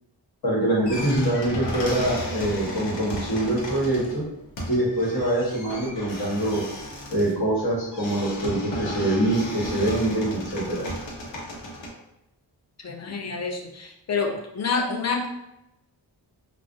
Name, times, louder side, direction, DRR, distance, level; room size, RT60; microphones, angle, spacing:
voice 1, 0.4-4.2 4.7-6.6 7.1-10.8, right 1 dB, 55° left, -4 dB, 1.1 m, -24 dB
sound 1, 0.8-11.9, equal, 75° left, 0.7 m, -34 dB
voice 2, 12.8-15.3, left 4 dB, 35° left, 2 dB, 0.5 m, -28 dB
2.4 x 2.0 x 2.4 m, 0.86 s
cardioid pair, 60°, 45 cm